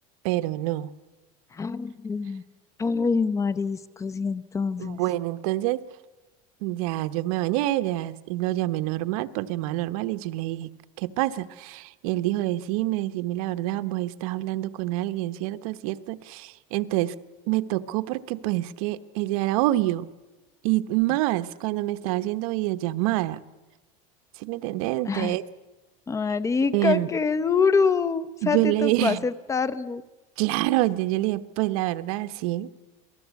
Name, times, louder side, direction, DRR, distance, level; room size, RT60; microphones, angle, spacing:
voice 1, 0.2-0.9 4.8-5.8 6.6-10.7 11.0-17.1 17.5-20.1 20.6-23.4 24.4-25.4 26.7-27.1 28.4-29.2 30.4-32.7, right 16 dB, 75° right, 13 dB, 1.0 m, -26 dB
voice 2, 1.5-2.4 2.8-5.0 25.0-25.3 26.1-30.0, left 5 dB, 15° left, 14 dB, 0.8 m, -25 dB
27.5 x 19.0 x 8.3 m, 1.1 s
cardioid pair, 150°, 18 cm